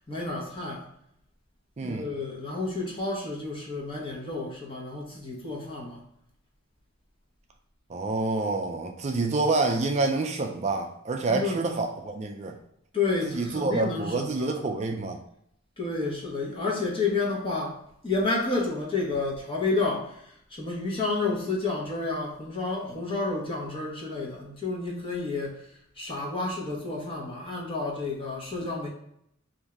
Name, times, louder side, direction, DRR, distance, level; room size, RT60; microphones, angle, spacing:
voice 1, 0.1-0.9 1.8-6.0 11.3-11.7 12.9-14.5 15.8-25.7 26.0-28.9, left 3 dB, 25° left, -3 dB, 1.1 m, -30 dB
voice 2, 1.8-2.1 7.9-12.6 13.3-15.2, right 3 dB, 35° right, 3 dB, 0.4 m, -28 dB
3.6 x 2.6 x 4.5 m, 0.70 s
head